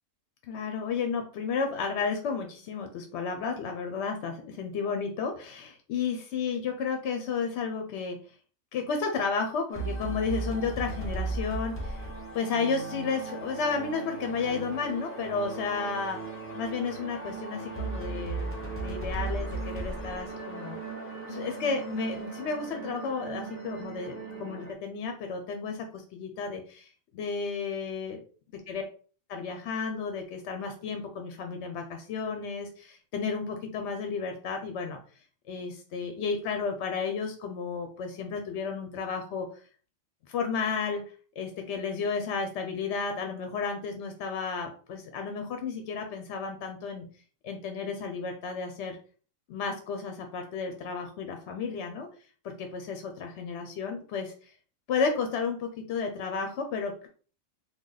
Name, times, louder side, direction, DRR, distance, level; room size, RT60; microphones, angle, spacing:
voice 1, 0.5-8.2 8.7-12.1 12.3-18.5 18.8-20.8 21.3-28.2 28.5-28.8 29.3-35.0 35.5-39.5 40.3-41.0 41.4-47.1 47.4-49.0 49.5-52.1 52.4-54.6 54.9-57.1, left 5 dB, 65° left, 5 dB, 0.7 m, -32 dB
sound 1, 9.7-24.7, right 3 dB, 15° left, 0.5 m, -37 dB
3.1 x 2.2 x 3.8 m, 0.41 s
omnidirectional pair, 1.4 m